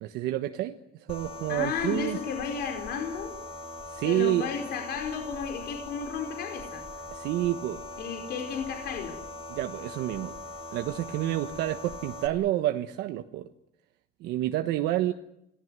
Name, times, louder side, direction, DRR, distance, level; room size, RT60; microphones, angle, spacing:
voice 1, 0.0-2.2 3.9-4.5 7.1-7.8 9.5-10.4 10.7-13.5 14.2-15.1, right 14 dB, 90° right, 6 dB, 1.3 m, -29 dB
sound 1, 1.1-12.3, left 2 dB, 35° left, 4.5 m, -41 dB
voice 2, 1.5-3.3 4.0-6.8 8.0-9.2, left 6 dB, 75° left, 3 dB, 4.9 m, -33 dB
26.5 x 19.0 x 9.5 m, 0.81 s
cardioid pair, 110°, 17 cm